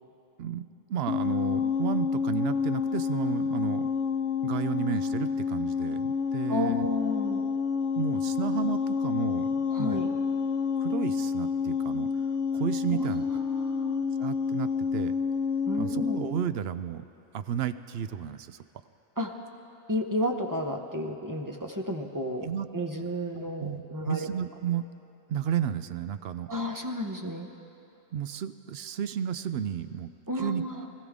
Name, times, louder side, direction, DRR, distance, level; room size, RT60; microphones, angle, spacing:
voice 1, 0.4-3.9 4.4-6.9 8.0-10.0 10.8-12.1 12.5-13.2 14.2-15.1 15.7-17.1 17.3-18.6 22.4-22.7 23.4-24.9 25.3-26.5 28.1-30.6, right 9 dB, 65° right, 12 dB, 0.7 m, -33 dB
sound 1, 1.1-16.4, left 6 dB, 75° left, 1.0 m, -29 dB
voice 2, 6.5-7.4 9.7-10.1 12.9-14.1 15.7-16.2 19.2-19.4 19.9-22.5 22.7-24.3 26.5-27.5 30.3-30.8, left 1 dB, 20° right, 3 dB, 0.8 m, -32 dB
24.0 x 15.5 x 3.6 m, 3.0 s
omnidirectional pair, 1.2 m